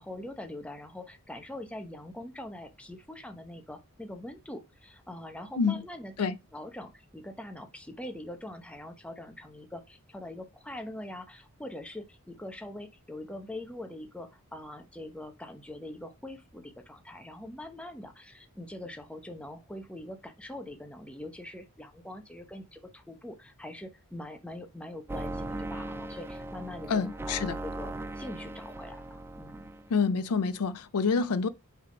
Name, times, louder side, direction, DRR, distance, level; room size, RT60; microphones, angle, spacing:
voice 1, 0.0-29.6, left 1 dB, 5° left, 0.8 m, -43 dB
sound 1, 25.1-30.0, right 1 dB, 10° right, 0.3 m, -38 dB
voice 2, 26.9-27.6 29.9-31.5, left 5 dB, 85° left, 0.5 m, -27 dB
5.3 x 3.4 x 5.1 m
head